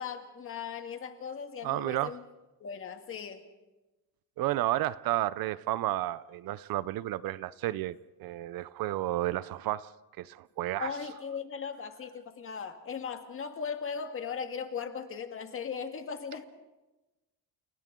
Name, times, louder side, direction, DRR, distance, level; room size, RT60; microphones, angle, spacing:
voice 1, 0.0-2.2 2.6-3.4 10.8-16.4, left 6 dB, 35° left, 1.8 m, -38 dB
voice 2, 1.6-2.1 4.4-9.9 10.2-10.9, right 15 dB, 65° right, 0.6 m, -32 dB
29.5 x 29.0 x 3.8 m
cardioid pair, 170°, 38 cm